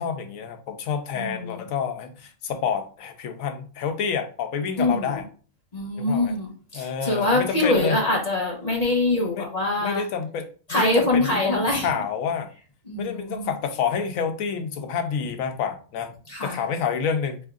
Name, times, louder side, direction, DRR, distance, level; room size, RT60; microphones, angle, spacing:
voice 1, 0.0-5.2 6.0-6.3 6.7-8.0 9.2-9.5 9.8-12.5 13.0-16.1 16.4-17.4, left 6 dB, 85° left, 6 dB, 1.1 m, -28 dB
voice 2, 1.2-1.6 4.8-5.2 5.7-10.0 10.7-11.9 12.9-13.5 16.3-16.6, left 2 dB, 35° left, 0 dB, 0.9 m, -24 dB
3.5 x 3.1 x 3.7 m, 0.39 s
omnidirectional pair, 1.4 m